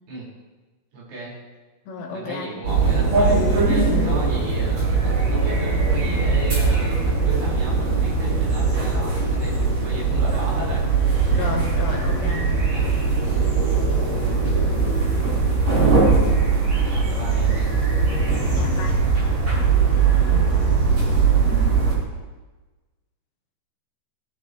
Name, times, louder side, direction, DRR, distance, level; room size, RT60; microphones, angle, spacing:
voice 1, 0.9-1.3 2.1-10.8 11.2-11.6 12.7-13.0 14.4-14.6 16.9-17.7 22.1-22.2, right 1 dB, 75° right, -6 dB, 8.3 m, -35 dB
voice 2, 1.9-2.5 11.3-12.5 18.5-19.1, left 4 dB, 70° left, 1 dB, 3.9 m, -32 dB
sound 1, 2.6-21.9, right 4 dB, 35° right, 6.2 m, -20 dB
22.0 x 12.5 x 3.4 m, 1.2 s
omnidirectional pair, 5.5 m